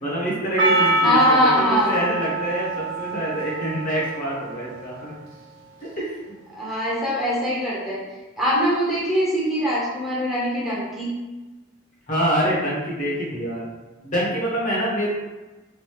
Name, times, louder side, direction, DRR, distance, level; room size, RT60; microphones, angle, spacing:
voice 1, 0.0-5.1 5.8-6.1 12.1-13.6 14.0-15.1, right 1 dB, 40° left, -5 dB, 0.9 m, -25 dB
Percussion, 0.6-4.9, right 1 dB, 70° right, 0.7 m, -24 dB
voice 2, 1.0-2.0 6.5-8.0 8.4-11.1, equal, ahead, -8 dB, 0.8 m, -22 dB
3.1 x 2.6 x 3.0 m, 1.2 s
head